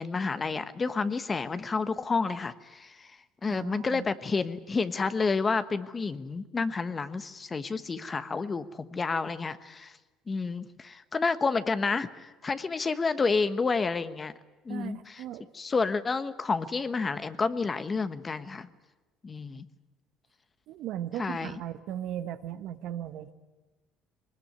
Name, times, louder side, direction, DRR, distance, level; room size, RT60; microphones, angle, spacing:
voice 1, 0.0-9.9 10.3-14.3 14.6-15.2 15.5-18.7 19.2-19.6 21.2-21.5, left 4 dB, 30° left, 12 dB, 1.2 m, -30 dB
voice 2, 3.5-4.1 14.7-15.5 20.7-23.3, right 11 dB, 70° right, 10 dB, 1.3 m, -37 dB
21.5 x 20.0 x 9.6 m, 1.2 s
supercardioid pair, 75°, 0 cm